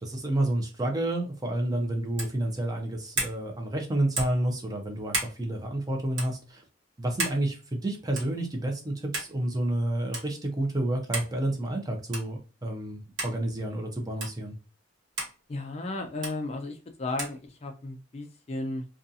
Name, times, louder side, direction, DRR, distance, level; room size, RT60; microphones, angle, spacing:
voice 1, 0.0-6.6 7.0-14.5, right 1 dB, 20° right, 2 dB, 0.5 m, -30 dB
sound 1, 2.1-2.4 3.1-3.4 4.1-4.4 5.1-5.4 6.1-6.3 7.2-7.4 8.2-8.4 9.1-9.3 10.1-10.3 11.1-11.3 12.1-12.3 13.2-13.3 14.2-14.3 15.2-15.3 16.2-16.4 17.2-17.4, right 3 dB, 60° right, 1.1 m, -32 dB
voice 2, 15.5-18.9, left 2 dB, 30° left, 3 dB, 0.3 m, -34 dB
2.5 x 2.3 x 2.6 m, 0.33 s
head